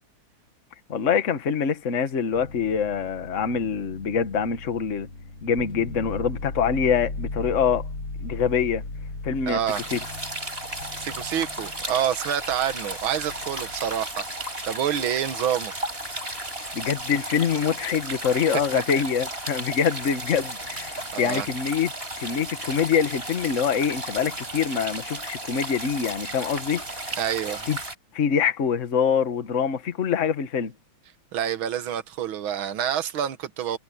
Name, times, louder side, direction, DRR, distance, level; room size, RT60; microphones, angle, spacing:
voice 1, 0.9-5.1 5.4-7.9 8.2-8.8 9.2-9.6 9.9-10.0 16.7-21.9 22.2-26.8 27.7-27.8 28.1-30.7, left 7 dB, 40° left, 1.6 m, -25 dB
sound 1, 2.3-14.1 15.0-15.3, left 2 dB, 75° left, 8.0 m, -38 dB
voice 2, 9.5-9.8 11.0-14.3 14.6-15.7 18.7-18.8 21.1-21.5 27.2-27.7 31.3-33.8, right 9 dB, 70° right, 2.1 m, -27 dB
sound 2, 9.7-28.0, right 1 dB, 25° right, 6.3 m, -34 dB
omnidirectional pair, 2.3 m